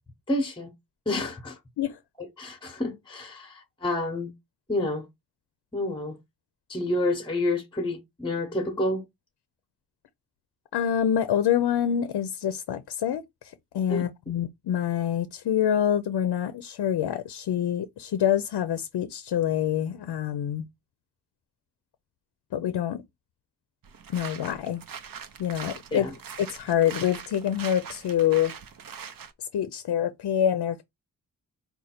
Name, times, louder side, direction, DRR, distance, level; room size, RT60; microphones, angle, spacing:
voice 1, 0.3-0.7 1.1-1.6 2.2-4.3 4.7-5.1 5.7-6.2 6.7-9.0 13.9-14.1 25.9-26.1, left 1 dB, 15° left, 0.8 m, -29 dB
voice 2, 10.7-20.7 22.5-23.0 24.1-24.8 25.4-26.1 26.5-28.5 29.5-30.8, left 10 dB, 85° left, 0.5 m, -26 dB
sound 1, 23.8-29.3, right 7 dB, 60° right, 0.7 m, -42 dB
4.9 x 2.3 x 4.2 m
wide cardioid pair, 125°, 39 cm